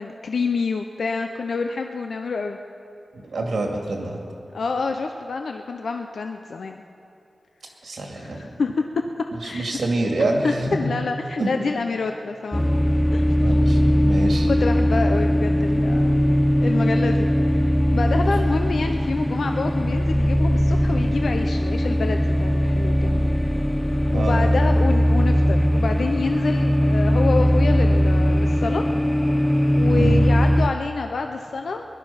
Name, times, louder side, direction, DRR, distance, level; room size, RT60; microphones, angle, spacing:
voice 1, 0.0-2.6 4.5-6.8 8.2-8.8 9.2-9.8 10.4-12.6 13.1-13.3 14.5-17.3 17.5-17.7 17.9-23.3 24.1-28.8 29.7-31.8, left 4 dB, 85° left, 5 dB, 0.6 m, -27 dB
voice 2, 3.1-4.2 7.8-8.5 9.3-10.9 11.4-11.5 13.4-14.5 24.1-24.5 29.9-30.2, right 2 dB, 85° right, 1 dB, 2.2 m, -26 dB
sound 1, 12.5-30.7, equal, 5° left, 0.4 m, -19 dB
20.5 x 11.5 x 5.7 m, 2.6 s
wide cardioid pair, 120°, 0 cm